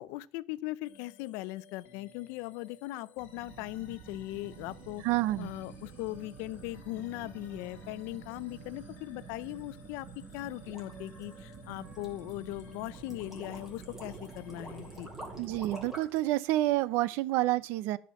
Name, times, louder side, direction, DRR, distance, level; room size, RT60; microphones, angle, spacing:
voice 1, 0.0-5.0 5.4-15.1, left 18 dB, 80° left, 18 dB, 0.6 m, -39 dB
sound 1, 0.8-15.6, left 7 dB, 55° left, 1.6 m, -58 dB
sound 2, 3.2-15.9, right 5 dB, 35° right, 1.4 m, -49 dB
voice 2, 5.0-5.5 15.4-18.0, right 16 dB, 70° right, 18 dB, 0.7 m, -28 dB
sound 3, 10.2-16.2, right 1 dB, 5° right, 3.0 m, -47 dB
13.5 x 5.6 x 7.4 m, 0.44 s
cardioid pair, 170°, 4 cm